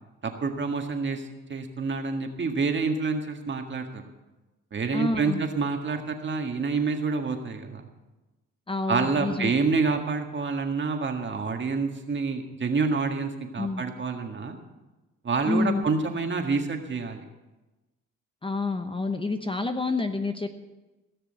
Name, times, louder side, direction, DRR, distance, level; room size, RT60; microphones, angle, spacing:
voice 1, 0.2-4.0 4.7-7.8 8.9-14.6 15.2-17.2, right 4 dB, 40° right, 4 dB, 1.9 m, -28 dB
voice 2, 4.9-5.4 8.7-9.5 13.6-13.8 15.4-15.8 18.4-20.5, left 3 dB, 15° left, 7 dB, 0.9 m, -28 dB
17.0 x 6.7 x 7.9 m, 1.1 s
cardioid pair, 90°, 30 cm